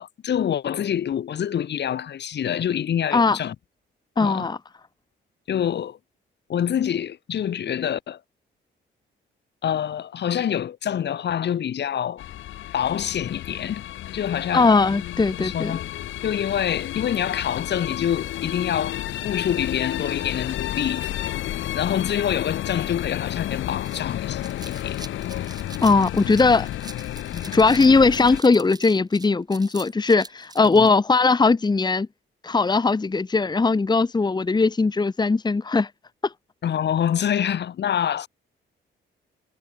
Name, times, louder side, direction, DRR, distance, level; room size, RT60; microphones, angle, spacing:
voice 1, 0.0-3.5 4.2-4.5 5.5-6.0 6.5-8.2 9.6-12.2 12.7-13.8 14.1-14.7 15.4-15.8 16.2-21.0 21.7-25.0 27.3-27.4 30.6-30.9 36.6-38.3, left 9 dB, 60° left, 2.9 m, -26 dB
voice 2, 4.2-4.6 14.5-15.8 25.8-26.7 27.5-32.1 32.4-35.9 36.2-36.3, left 4 dB, 20° left, 1.4 m, -19 dB
sound 1, 12.2-28.4, left 13 dB, 80° left, 2.4 m, -31 dB
sound 2, 23.5-30.9, right 3 dB, 20° right, 7.6 m, -44 dB
cardioid pair, 90°, 20 cm